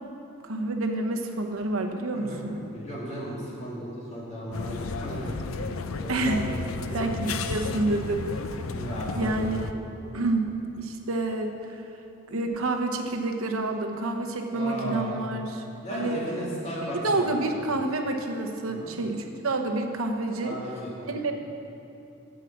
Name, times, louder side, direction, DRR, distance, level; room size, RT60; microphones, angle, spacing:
voice 1, 0.4-2.5 6.1-6.4 6.9-8.4 9.1-9.8 10.1-10.5 10.8-11.7 12.3-15.6 15.9-16.2 17.0-20.6 21.1-21.3, right 2 dB, 80° right, 4 dB, 1.0 m, -28 dB
voice 2, 2.1-5.6 5.9-7.0 7.8-7.9 8.6-9.5 10.0-10.3 14.5-15.1 15.8-17.5 18.7-18.9 20.4-21.2, equal, 30° left, -6 dB, 2.5 m, -35 dB
sound 1, 4.5-9.7, left 4 dB, 75° left, 0.5 m, -33 dB
9.7 x 7.4 x 7.2 m, 2.7 s
head